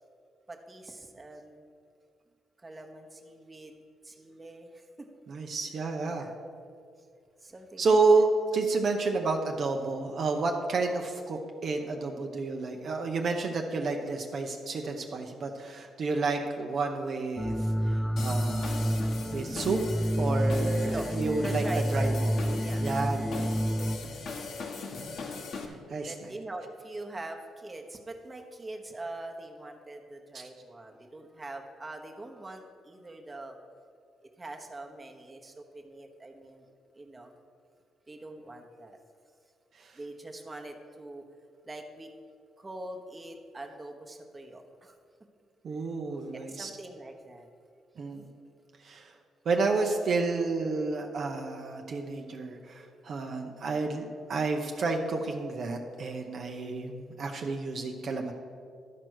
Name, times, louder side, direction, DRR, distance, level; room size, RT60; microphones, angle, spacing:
voice 1, 0.5-1.7 2.6-5.1 6.1-6.4 7.4-8.0 12.6-12.7 20.8-22.2 22.6-22.9 24.1-24.2 26.0-33.7 34.4-36.7 36.9-37.3 38.1-39.0 39.9-41.2 41.6-42.1 42.6-45.0 45.9-46.0 46.3-47.5, right 2 dB, 20° right, 3 dB, 1.1 m, -43 dB
voice 2, 5.3-6.3 7.8-17.5 17.9-19.8 20.2-21.6 21.9-22.4 22.8-23.7 25.9-26.1 45.6-46.7 48.0-48.3 48.8-49.1 49.5-58.3, right 3 dB, 55° right, 2 dB, 0.8 m, -30 dB
sound 1, 17.4-24.0, equal, 5° left, 0.3 m, -29 dB
sound 2, 18.2-25.7, left 4 dB, 65° left, 1.2 m, -40 dB
12.0 x 4.6 x 6.3 m, 2.3 s
cardioid pair, 90°, 0 cm